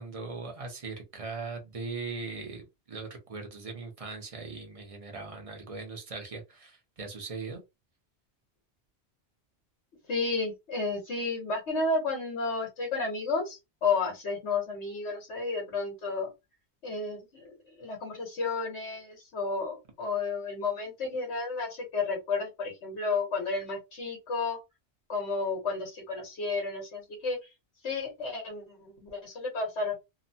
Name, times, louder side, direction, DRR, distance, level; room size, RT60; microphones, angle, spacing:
voice 1, 0.0-7.6, right 4 dB, 35° right, 3 dB, 0.7 m, -39 dB
voice 2, 10.1-16.3 16.8-24.6 25.1-27.4 27.8-29.9, left 3 dB, 85° left, 0 dB, 1.3 m, -32 dB
2.9 x 2.1 x 2.6 m, 0.23 s
omnidirectional pair, 1.1 m